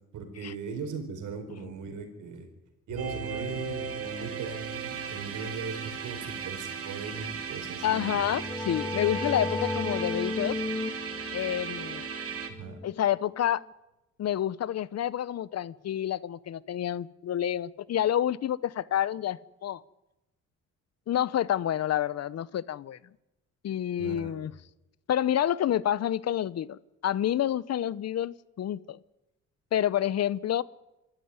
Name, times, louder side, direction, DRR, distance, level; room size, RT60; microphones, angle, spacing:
voice 1, 0.1-2.5 2.9-8.2 12.5-12.8 24.0-24.5, right 4 dB, 80° right, 7 dB, 4.5 m, -38 dB
sound 1, 2.9-10.0 10.3-10.4 10.7-10.8, left 3 dB, 85° left, 5.3 m, -50 dB
sound 2, 3.0-12.5, right 7 dB, 50° right, 3.0 m, -37 dB
voice 2, 7.8-10.6 11.3-12.1 12.8-13.6 14.2-19.8 21.1-23.0 23.6-24.5 25.1-29.0 29.7-30.6, left 11 dB, 55° left, 20 dB, 0.8 m, -28 dB
sound 3, 7.9-13.4, left 2 dB, 10° left, 1.0 m, -35 dB
24.5 x 13.5 x 9.6 m, 0.95 s
cardioid pair, 90°, 30 cm